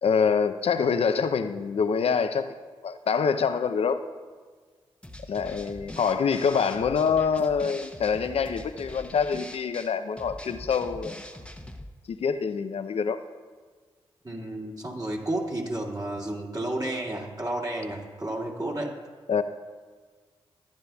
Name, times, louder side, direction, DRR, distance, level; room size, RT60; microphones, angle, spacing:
voice 1, 0.0-2.5 2.8-4.0 5.3-11.3 12.1-13.2 19.3-19.4, left 6 dB, 65° left, 10 dB, 0.6 m, -25 dB
sound 1, 5.0-11.9, left 1 dB, 10° left, 0.9 m, -43 dB
voice 2, 14.2-18.9, right 1 dB, 35° right, -2 dB, 2.3 m, -31 dB
14.0 x 10.5 x 2.3 m, 1.5 s
supercardioid pair, 40°, 11 cm